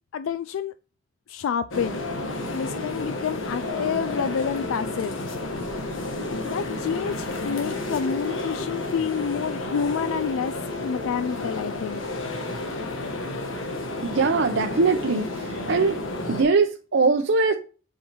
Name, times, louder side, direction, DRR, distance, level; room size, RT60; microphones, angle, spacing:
voice 1, 0.1-0.7 1.3-2.0 2.5-5.1 6.4-10.5 10.8-12.1, left 7 dB, 90° left, 0.3 m, -28 dB
sound 1, 1.7-16.4, left 2 dB, 75° left, 1.3 m, -31 dB
voice 2, 14.0-16.0 16.3-17.5, right 4 dB, 70° right, 0.7 m, -22 dB
8.0 x 4.8 x 3.0 m
head